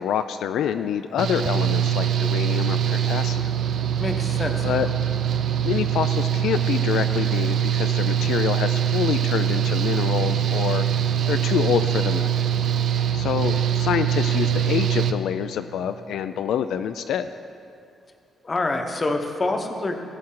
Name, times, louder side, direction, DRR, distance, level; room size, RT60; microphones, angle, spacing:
voice 1, 0.0-3.5 4.6-4.9 5.6-10.8 11.3-12.5 13.1-17.3, left 8 dB, 75° left, 10 dB, 0.3 m, -26 dB
Engine / Mechanical fan, 1.2-15.1, right 9 dB, 55° right, 0.5 m, -23 dB
voice 2, 4.0-4.9 18.4-20.0, left 2 dB, 25° left, 5 dB, 0.8 m, -26 dB
18.0 x 7.6 x 3.8 m, 2.5 s
cardioid pair, 155°, 0 cm